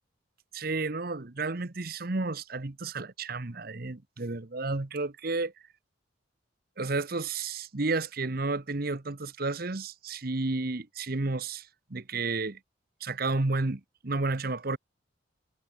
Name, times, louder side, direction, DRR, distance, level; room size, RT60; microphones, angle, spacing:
voice 1, 0.5-5.5 6.8-12.6 13.0-14.8, right 3 dB, 50° right, 1.0 m, -32 dB
head